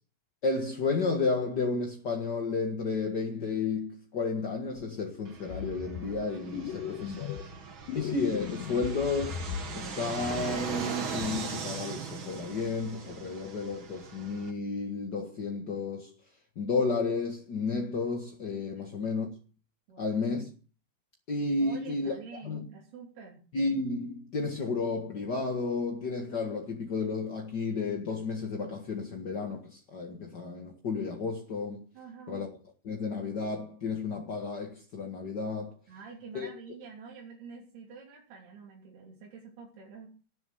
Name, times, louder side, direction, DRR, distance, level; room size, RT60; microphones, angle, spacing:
voice 1, 0.4-7.4 7.9-9.4 9.7-16.1 16.5-19.3 20.0-20.5 21.3-22.6 23.5-31.9 32.3-32.5 32.8-35.7 36.3-36.5, left 4 dB, 45° left, 1.3 m, -32 dB
Fixed-wing aircraft airplane, 5.2-14.5, right 5 dB, 45° right, 1.9 m, -40 dB
sound 1, 5.5-6.2 6.5-7.6 7.9-9.9 10.2-10.8 11.2-11.5, left 9 dB, 70° left, 2.4 m, -38 dB
voice 2, 6.6-7.7 18.7-19.0 19.9-20.4 21.6-23.4 31.9-32.5 35.9-40.1, right 5 dB, 90° right, 5.1 m, -48 dB
18.5 x 7.5 x 7.9 m
omnidirectional pair, 4.4 m